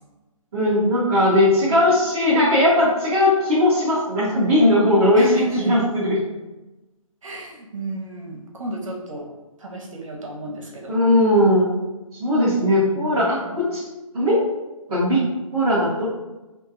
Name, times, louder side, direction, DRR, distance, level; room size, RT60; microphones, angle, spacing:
voice 1, 0.5-6.2 10.9-11.7 12.2-13.8 14.1-14.4 14.9-15.2 15.5-16.0, left 1 dB, 15° right, -13 dB, 0.7 m, -18 dB
voice 2, 5.1-5.7 7.2-9.3 9.6-11.0 12.6-13.6, right 1 dB, 65° right, 0 dB, 1.0 m, -33 dB
3.6 x 2.6 x 2.6 m, 1.1 s
hypercardioid pair, 165°, 18 cm